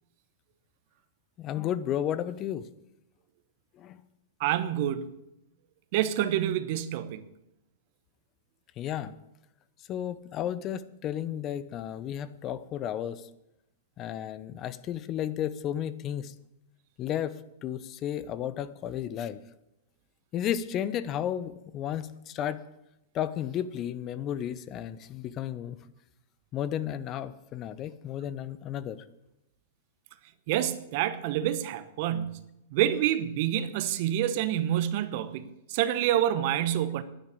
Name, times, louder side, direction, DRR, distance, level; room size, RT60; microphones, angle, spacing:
voice 1, 1.4-2.7 3.7-4.0 8.8-9.1 9.9-13.3 14.0-16.3 17.0-19.4 20.3-22.6 23.1-25.8 26.5-29.0, left 10 dB, 35° left, 0.8 m, -33 dB
voice 2, 4.4-5.1 5.9-7.3 30.5-37.0, right 11 dB, 55° right, 1.0 m, -28 dB
10.5 x 10.0 x 8.5 m
hypercardioid pair, 120°, 0 cm